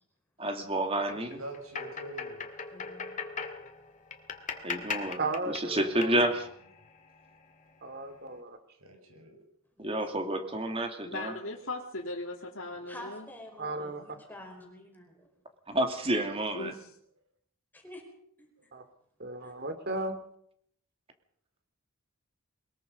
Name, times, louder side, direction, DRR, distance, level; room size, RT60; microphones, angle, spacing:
voice 1, 0.4-1.4 4.6-6.5 9.8-11.3 15.7-16.7, right 1 dB, 25° right, 6 dB, 2.6 m, -30 dB
sound 1, 1.0-7.7, left 5 dB, 35° left, 2.3 m, -40 dB
voice 2, 1.1-2.4 6.0-6.1 8.7-9.4 13.9-14.3 19.3-19.4, right 2 dB, 70° right, 5 dB, 5.9 m, -46 dB
voice 3, 2.7-3.2 9.8-10.4 12.9-15.3 17.7-18.0 18.4-18.7 19.4-19.5, left 1 dB, 10° left, 2 dB, 4.7 m, -49 dB
voice 4, 5.2-6.3 7.8-8.6 13.6-14.0 18.7-18.8 19.2-20.1, right 2 dB, 45° right, 10 dB, 2.6 m, -35 dB
voice 5, 11.1-13.3 16.5-16.9, left 2 dB, 60° left, -2 dB, 2.6 m, -38 dB
22.5 x 21.5 x 5.4 m, 0.70 s
head